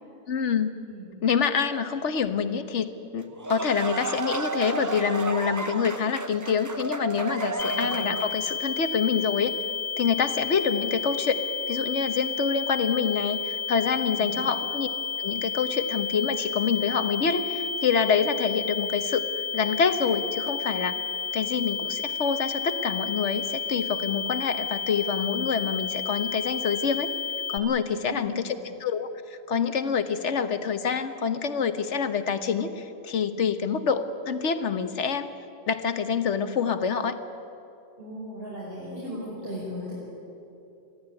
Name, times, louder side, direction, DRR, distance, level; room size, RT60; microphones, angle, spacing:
voice 1, 0.3-0.8 1.2-9.5 10.0-11.4 11.7-14.9 15.2-19.3 19.5-21.0 21.3-27.1 27.5-35.3 35.7-37.2, left 6 dB, 80° left, 10 dB, 1.4 m, -26 dB
voice 2, 0.8-1.1 7.6-8.1 14.2-14.5 27.9-28.6 38.0-39.9, equal, 55° right, -7 dB, 5.7 m, -37 dB
sound 1, 3.2-8.5, right 3 dB, 20° right, 0.5 m, -32 dB
sound 2, 7.6-27.6, left 6 dB, 55° left, 1.0 m, -32 dB
22.0 x 15.0 x 9.8 m, 2.7 s
omnidirectional pair, 1.2 m